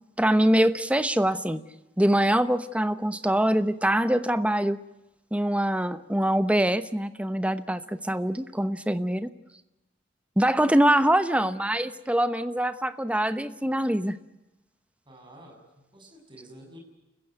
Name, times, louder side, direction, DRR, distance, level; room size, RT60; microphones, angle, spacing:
voice 1, 0.2-1.6 2.0-4.8 5.3-9.3 10.4-14.2, right 1 dB, 5° right, 11 dB, 1.0 m, -24 dB
voice 2, 15.1-16.8, right 1 dB, 25° right, 2 dB, 7.3 m, -50 dB
29.0 x 15.5 x 9.4 m, 0.97 s
head